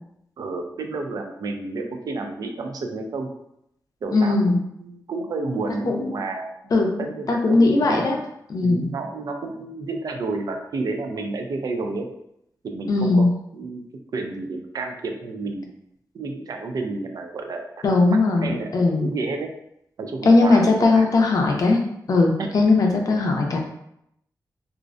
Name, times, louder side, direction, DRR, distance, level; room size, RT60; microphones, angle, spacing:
voice 1, 0.4-3.3 4.0-6.5 7.0-8.1 8.6-12.1 12.6-13.3 13.5-13.8 14.1-15.7 16.1-19.5 20.0-21.1 22.4-22.5, right 3 dB, 60° right, 4 dB, 0.3 m, -31 dB
voice 2, 4.1-4.6 5.9-6.1 6.7-6.9 7.3-8.2 8.5-8.9 12.9-13.3 17.8-19.1 20.2-21.8 22.1-23.6, left 3 dB, 55° left, 1 dB, 0.4 m, -18 dB
2.5 x 2.0 x 2.4 m, 0.78 s
wide cardioid pair, 120°, 7 cm